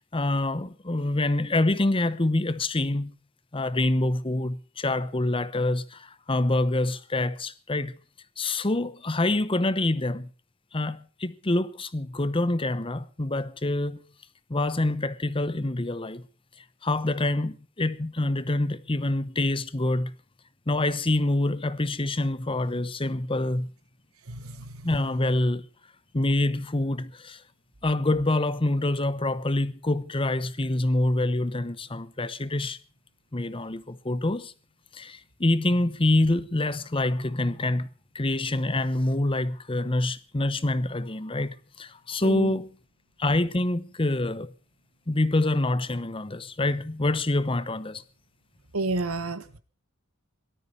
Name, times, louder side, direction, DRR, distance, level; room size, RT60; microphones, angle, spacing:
voice 1, 0.1-3.1 3.5-8.0 8.4-10.3 10.7-14.0 14.5-16.2 16.8-20.1 20.7-23.7 24.8-25.7 26.1-27.4 27.8-32.8 33.3-34.5 34.9-37.9 38.1-42.7 43.2-44.5 45.1-48.0, left 2 dB, 25° left, 0.9 m, -26 dB
voice 2, 24.3-24.9 42.2-42.6 48.7-49.6, right 2 dB, 85° right, 1.5 m, -31 dB
18.0 x 13.0 x 5.6 m
head